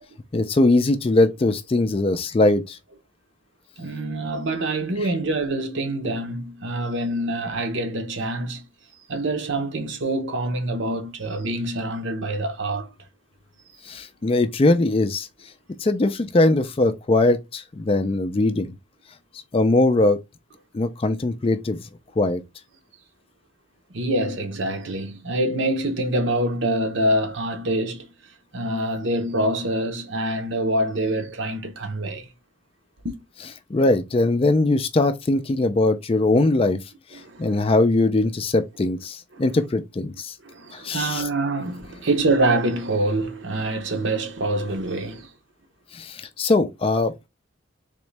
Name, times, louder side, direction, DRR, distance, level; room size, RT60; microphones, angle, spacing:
voice 1, 0.3-2.8 13.8-15.3 15.8-18.7 19.5-20.2 20.7-21.8 22.2-22.4 33.7-36.8 37.1-40.4 40.7-41.3 45.9-47.3, left 2 dB, 25° left, 0.3 m, -21 dB
voice 2, 3.8-8.7 9.1-12.9 23.9-28.1 28.5-32.3 33.0-33.2 37.1-37.7 39.3-39.4 40.4-45.3, right 1 dB, 65° right, 0.9 m, -25 dB
3.7 x 3.1 x 3.2 m
head